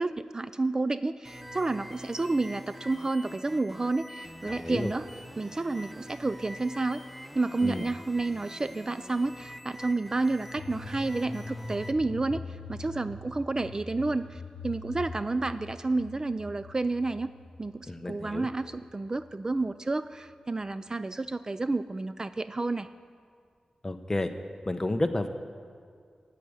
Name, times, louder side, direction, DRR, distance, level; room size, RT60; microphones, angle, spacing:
voice 1, 0.0-5.1 5.4-7.0 7.3-17.3 17.6-22.9, right 3 dB, 30° right, 12 dB, 0.3 m, -30 dB
sound 1, 1.2-11.9, equal, 5° right, 0.7 m, -45 dB
voice 2, 4.5-4.9 7.6-7.8 17.9-18.5 23.8-24.3 24.7-25.3, left 1 dB, 25° left, 7 dB, 0.9 m, -30 dB
sound 2, 10.6-20.4 20.7-20.8, left 3 dB, 75° left, 1.3 m, -44 dB
11.5 x 8.4 x 9.4 m, 2.2 s
wide cardioid pair, 95°, 2 cm